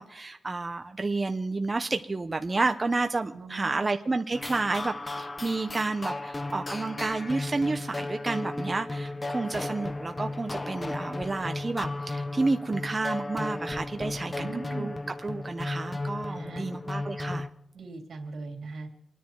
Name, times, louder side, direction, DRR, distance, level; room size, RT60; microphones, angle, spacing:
voice 1, 0.0-14.5 14.7-14.9 15.2-17.5, right 3 dB, 30° right, 6 dB, 0.8 m, -30 dB
voice 2, 3.3-3.8 14.4-14.9 16.3-16.8 17.7-18.9, right 3 dB, 80° right, 3 dB, 3.1 m, -39 dB
sound 1, 4.3-17.5, left 2 dB, 25° left, 0.8 m, -35 dB
28.0 x 10.0 x 4.6 m, 0.87 s
wide cardioid pair, 100°, 0 cm